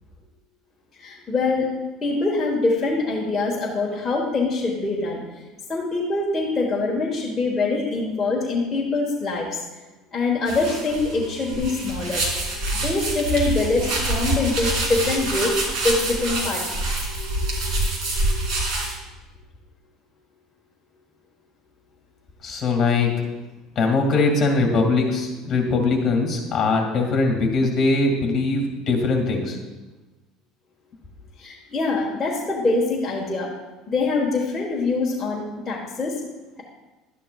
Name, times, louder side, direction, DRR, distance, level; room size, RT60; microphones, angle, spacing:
voice 1, 1.0-1.7 2.0-5.2 5.7-9.5 10.1-12.2 12.8-15.5 15.8-16.6 31.4-33.5 33.9-36.1, left 3 dB, 15° left, -4 dB, 1.3 m, -24 dB
sound 1, 10.5-18.9, right 2 dB, 60° right, 2.8 m, -26 dB
voice 2, 22.4-23.1 23.8-29.6, left 3 dB, 35° left, 3 dB, 2.2 m, -21 dB
12.0 x 9.8 x 2.4 m, 1.2 s
cardioid pair, 135°, 0 cm